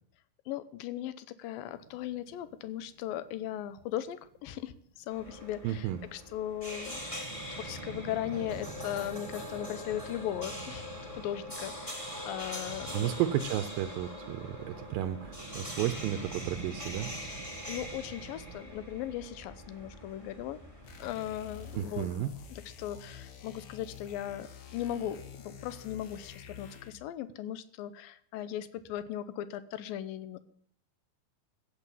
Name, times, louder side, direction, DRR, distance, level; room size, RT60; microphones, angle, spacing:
voice 1, 0.5-7.0 7.5-10.9 11.1-13.1 17.7-20.6 21.0-22.1 22.5-24.5 24.7-30.4, left 11 dB, 75° left, 13 dB, 2.4 m, -38 dB
sound 1, 1.7-4.7 5.1-5.2 5.3-5.4 5.7-5.8 6.3-14.0 14.3-18.6, right 4 dB, 50° right, 1.8 m, -48 dB
sound 2, 5.1-21.8, left 1 dB, 10° left, 2.2 m, -43 dB
voice 2, 5.6-6.0 12.9-17.1 21.7-22.3, right 12 dB, 75° right, 9 dB, 2.3 m, -32 dB
sound 3, 20.8-27.1, left 6 dB, 60° left, 2.1 m, -48 dB
15.5 x 8.1 x 7.2 m, 0.64 s
omnidirectional pair, 4.4 m